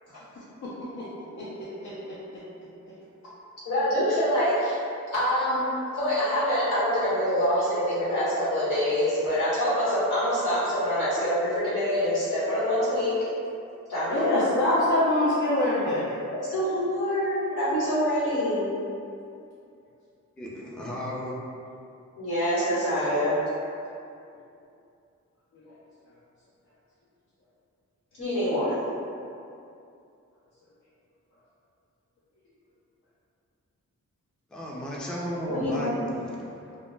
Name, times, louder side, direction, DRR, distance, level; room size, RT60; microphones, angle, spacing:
voice 1, 0.6-1.1 1.4-2.4 3.2-3.3 14.1-16.1 25.5-25.7, left 1 dB, 65° left, -10 dB, 0.6 m, -26 dB
voice 2, 3.6-4.8 5.1-5.6 5.9-13.1 13.9-14.6 16.5-18.7 22.2-23.4 28.2-28.9 35.4-35.9, equal, 85° left, -11 dB, 1.2 m, -25 dB
voice 3, 20.4-21.4 34.5-36.8, equal, 5° left, -4 dB, 0.3 m, -34 dB
2.2 x 2.0 x 3.2 m, 2.6 s
cardioid pair, 70°, 30 cm